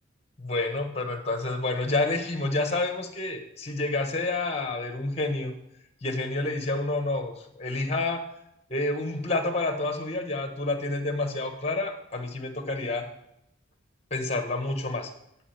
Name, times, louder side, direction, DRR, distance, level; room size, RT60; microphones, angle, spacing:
voice 1, 0.4-5.5 6.0-8.2 8.7-13.0 14.1-15.1, left 2 dB, 30° left, 5 dB, 1.3 m, -29 dB
11.0 x 4.9 x 7.1 m, 0.79 s
head